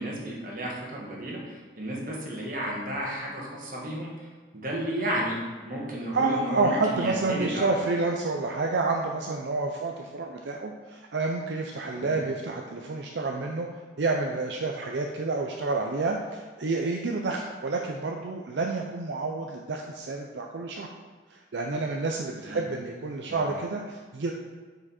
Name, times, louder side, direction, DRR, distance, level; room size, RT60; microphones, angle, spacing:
voice 1, 0.0-5.4 5.6-7.8 11.9-12.2 22.4-22.6 23.3-23.5, right 1 dB, 45° right, -3 dB, 1.6 m, -33 dB
voice 2, 6.1-13.7 14.0-20.9 21.3-24.3, right 3 dB, 75° right, 1 dB, 0.5 m, -29 dB
6.6 x 5.0 x 4.3 m, 1.4 s
head